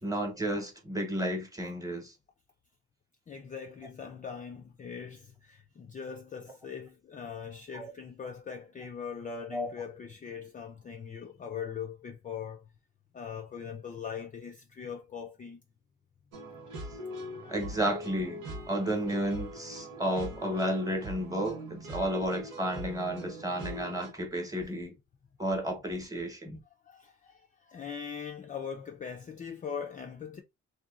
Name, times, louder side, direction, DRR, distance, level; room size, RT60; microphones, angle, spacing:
voice 1, 0.0-2.1 7.7-7.9 9.5-9.7 17.5-25.0 25.4-26.6, right 1 dB, 10° right, 1.0 m, -32 dB
voice 2, 3.3-12.7 13.1-15.6 26.9-30.4, left 6 dB, 25° left, 0.4 m, -41 dB
sound 1, 16.3-24.1, equal, 90° right, 1.1 m, -42 dB
2.8 x 2.3 x 2.3 m
cardioid pair, 90°, 30 cm